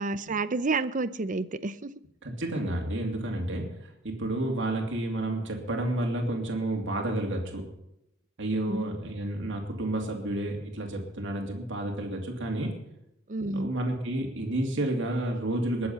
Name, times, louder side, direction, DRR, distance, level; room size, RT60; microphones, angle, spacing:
voice 1, 0.0-1.9 8.7-8.8 13.3-13.7, right 3 dB, 40° right, 14 dB, 0.7 m, -30 dB
voice 2, 2.2-7.7 8.4-12.7 13.5-15.9, right 1 dB, 60° right, 1 dB, 2.6 m, -30 dB
20.5 x 7.7 x 5.7 m, 0.84 s
head